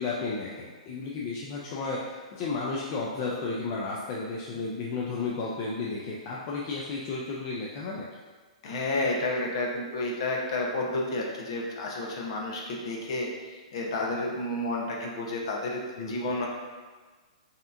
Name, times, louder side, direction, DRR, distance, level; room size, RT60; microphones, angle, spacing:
voice 1, 0.0-8.1 16.0-16.2, left 3 dB, 25° left, -4 dB, 0.3 m, -33 dB
voice 2, 8.6-13.3 13.7-16.5, left 2 dB, 45° left, -1 dB, 0.7 m, -30 dB
5.5 x 2.8 x 2.5 m, 1.4 s
hypercardioid pair, 175°, 4 cm